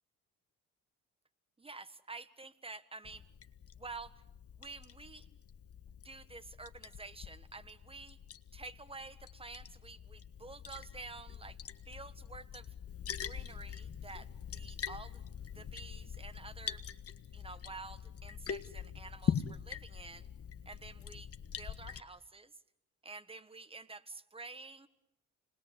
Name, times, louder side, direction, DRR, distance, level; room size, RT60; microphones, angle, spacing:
voice 1, 1.6-3.3 3.8-4.2 4.6-5.3 6.0-8.2 8.5-11.6 11.8-12.7 13.2-15.2 15.5-16.8 17.3-20.3 20.6-21.3 21.6-22.5 23.0-24.9, right 3 dB, 20° right, 11 dB, 1.5 m, -49 dB
Liquid, 3.1-22.0, left 8 dB, 50° left, 1.4 m, -43 dB
29.5 x 20.5 x 8.2 m, 0.88 s
cardioid pair, 90°, 30 cm